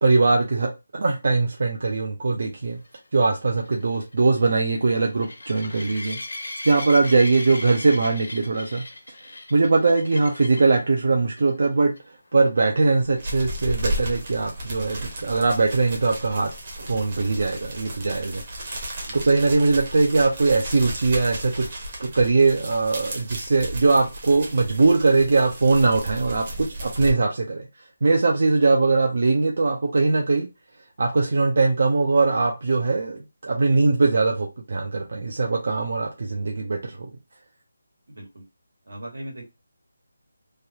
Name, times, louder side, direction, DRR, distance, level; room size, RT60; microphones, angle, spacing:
voice 1, 0.0-2.8 3.1-6.2 6.6-8.8 9.5-12.0 12.3-16.5 16.8-18.9 19.1-27.7 28.0-30.5 31.0-37.1, right 3 dB, 55° right, 0.5 m, -21 dB
sound 1, 2.8-10.8 11.4-11.7 12.0-12.1 12.4-12.5 16.1-16.2, left 2 dB, 75° left, 1.1 m, -38 dB
sound 2, 12.9-27.1, right 1 dB, 35° right, 0.9 m, -34 dB
voice 2, 38.1-38.4 38.9-39.5, right 1 dB, 85° right, 1.5 m, -39 dB
3.2 x 2.3 x 2.7 m
figure-of-eight pair, 170°, 0 cm